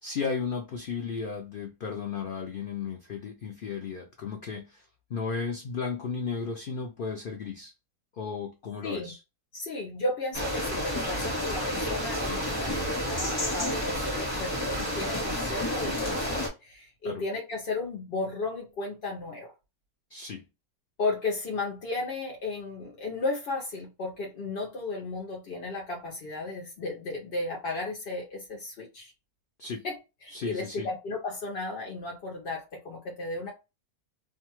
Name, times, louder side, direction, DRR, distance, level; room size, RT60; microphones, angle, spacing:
voice 1, 0.0-4.8 5.1-7.7 8.2-9.2 17.0-17.2 20.1-20.4 29.6-29.8 30.3-30.9, left 5 dB, 90° left, 0.4 m, -34 dB
voice 2, 8.8-9.1 9.5-19.5 21.0-29.1 29.8-30.0 30.2-33.5, left 2 dB, 50° left, 0.8 m, -34 dB
sound 1, 10.3-16.5, equal, 15° left, 1.2 m, -30 dB
2.6 x 2.3 x 2.9 m
omnidirectional pair, 1.6 m